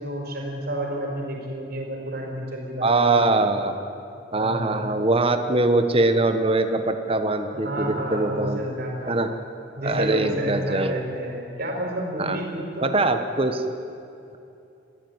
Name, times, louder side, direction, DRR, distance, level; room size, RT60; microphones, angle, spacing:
voice 1, 0.0-3.4 4.3-4.8 7.4-9.2 9.8-13.0, right 1 dB, 50° right, 0 dB, 4.9 m, -30 dB
voice 2, 2.8-3.7 4.3-8.6 9.1-9.3 9.8-10.9 12.2-12.4 12.8-13.6, right 2 dB, 30° right, 8 dB, 1.2 m, -22 dB
23.0 x 15.0 x 9.6 m, 2.7 s
head